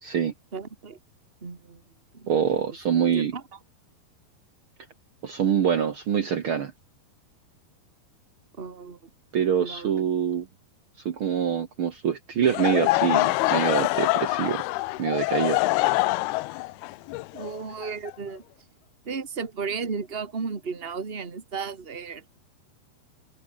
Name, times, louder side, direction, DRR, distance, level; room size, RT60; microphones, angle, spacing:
voice 1, 0.0-0.3 2.3-3.3 5.2-6.7 9.3-10.5 11.0-14.6 15.0-15.6, right 8 dB, 80° right, 1.1 m, -25 dB
voice 2, 0.5-1.0 1.4-1.8 2.1-2.4 3.1-3.4 8.6-9.0 9.6-9.9 17.3-18.4 19.0-22.3, right 5 dB, 25° right, 1.3 m, -34 dB
Laughter / Crowd, 12.4-18.4, left 20 dB, 80° left, 2.5 m, -25 dB
omnidirectional pair, 4.7 m